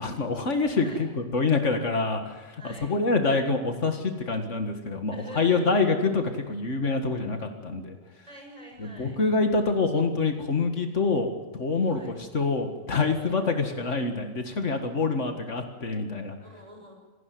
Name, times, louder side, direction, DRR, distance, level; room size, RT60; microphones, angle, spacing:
voice 1, 0.0-8.0 8.8-16.4, left 3 dB, 80° left, 5 dB, 2.2 m, -26 dB
voice 2, 2.6-2.9 5.1-5.9 8.3-9.2 11.9-12.1 13.1-13.4 16.4-16.9, right 1 dB, 25° right, 1 dB, 8.1 m, -45 dB
26.5 x 11.0 x 9.5 m, 1.3 s
omnidirectional pair, 1.3 m